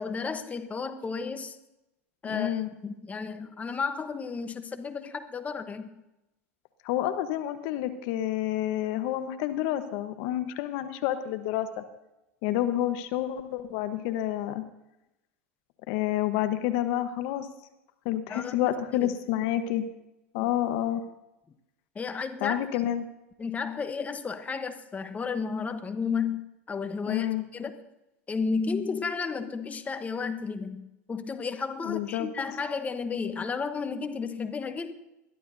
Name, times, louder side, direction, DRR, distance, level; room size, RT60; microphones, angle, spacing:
voice 1, 0.0-1.6 2.2-5.9 12.5-12.6 18.3-18.6 18.9-19.1 20.4-20.5 21.9-22.6 23.4-27.3 27.5-27.8 28.3-34.9, left 5 dB, 20° left, 9 dB, 1.1 m, -33 dB
voice 2, 2.2-2.7 6.8-11.8 12.4-14.6 15.9-17.5 18.0-19.8 20.3-21.0 22.4-23.1 27.1-27.4 31.8-32.3, left 12 dB, 60° left, 9 dB, 1.2 m, -29 dB
21.5 x 13.5 x 2.7 m, 0.91 s
hypercardioid pair, 95°, 8 cm